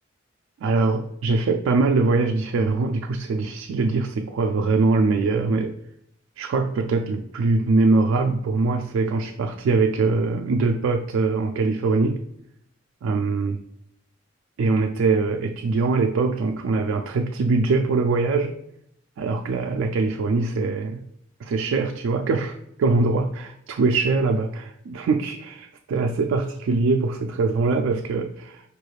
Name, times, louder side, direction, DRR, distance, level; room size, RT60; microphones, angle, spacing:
voice 1, 0.6-5.7 6.4-12.2 13.0-13.6 14.6-18.6 19.2-21.0 21.4-28.6, right 3 dB, 80° right, 4 dB, 0.3 m, -22 dB
4.9 x 3.2 x 2.3 m, 0.76 s
head